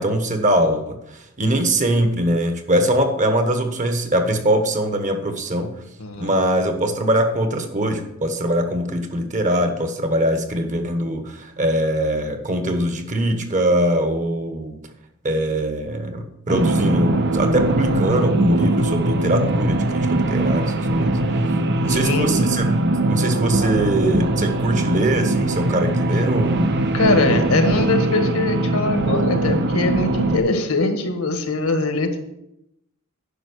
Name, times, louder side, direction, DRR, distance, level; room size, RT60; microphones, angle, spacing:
voice 1, 0.0-5.7 6.2-14.7 15.2-21.2 21.8-22.7 23.1-26.7, right 1 dB, 35° right, 6 dB, 1.3 m, -22 dB
voice 2, 6.0-6.3 21.9-22.3 26.9-32.2, left 2 dB, 75° left, 6 dB, 1.6 m, -22 dB
sound 1, 16.5-30.4, right 2 dB, 55° right, 0.9 m, -21 dB
10.0 x 6.0 x 6.4 m, 0.83 s
head